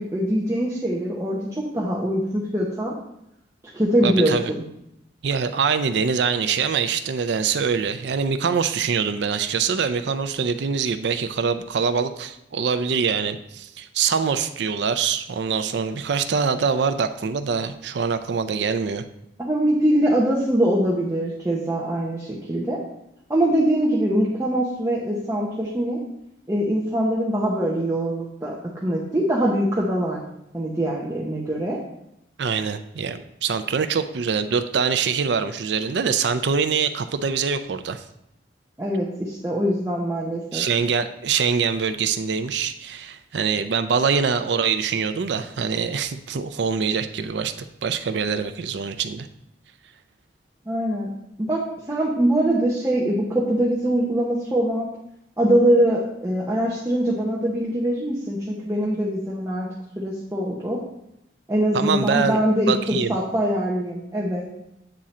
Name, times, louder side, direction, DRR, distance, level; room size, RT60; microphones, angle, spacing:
voice 1, 0.0-2.9 3.7-4.6 19.4-22.8 23.3-26.0 26.5-28.5 28.8-30.2 30.5-31.8 38.8-40.6 50.7-51.1 51.4-54.9 55.4-59.7 60.0-60.8 61.5-64.5, right 1 dB, 15° right, -5 dB, 0.9 m, -23 dB
voice 2, 4.0-4.4 5.2-19.0 32.4-38.0 40.5-47.5 47.8-49.3 61.7-62.4 62.7-63.1, right 6 dB, 70° right, 10 dB, 0.4 m, -24 dB
8.7 x 3.7 x 4.2 m, 0.81 s
head